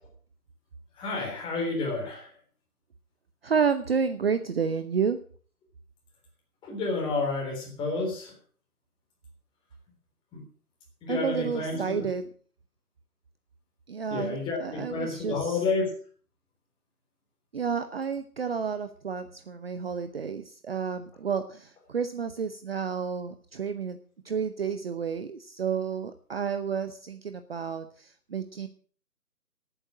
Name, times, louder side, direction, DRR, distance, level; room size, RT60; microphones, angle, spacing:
voice 1, 1.0-2.3 6.6-8.3 10.3-10.4 11.0-12.1 14.1-15.9, left 3 dB, 10° left, -1 dB, 3.5 m, -30 dB
voice 2, 3.4-5.2 11.1-12.2 13.9-15.6 17.5-24.0 24.2-28.7, right 6 dB, 40° right, 11 dB, 0.8 m, -30 dB
14.5 x 9.0 x 6.1 m, 0.44 s
figure-of-eight pair, 140°, 45 cm